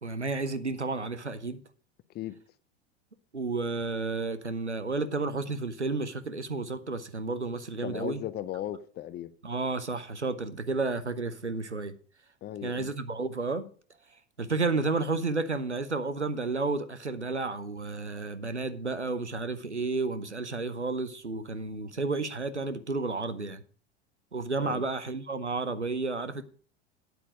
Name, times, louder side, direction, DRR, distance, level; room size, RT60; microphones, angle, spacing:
voice 1, 0.0-1.6 3.3-8.2 9.4-11.9 12.6-13.7 14.4-23.6 24.3-26.4, right 3 dB, 90° right, 0.8 m, -31 dB
voice 2, 7.8-9.3 12.4-12.9 24.6-24.8, left 12 dB, 30° left, 0.7 m, -37 dB
9.5 x 8.4 x 5.0 m
figure-of-eight pair, 80°, 33 cm